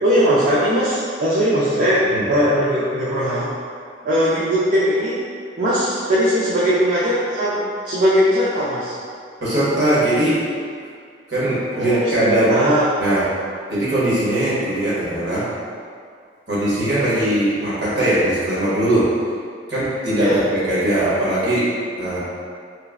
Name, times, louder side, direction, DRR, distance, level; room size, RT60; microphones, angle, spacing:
voice 1, 0.0-3.5 4.0-5.2 5.6-9.0 11.7-12.2 12.5-12.9 20.2-20.4, equal, 50° right, -9 dB, 0.4 m, -19 dB
voice 2, 9.4-10.4 11.3-12.6 13.0-13.3 13.7-15.5 16.5-19.1 19.7-21.7 22.0-22.2, right 1 dB, 65° right, -10 dB, 1.1 m, -20 dB
3.1 x 2.4 x 2.3 m, 2.2 s
head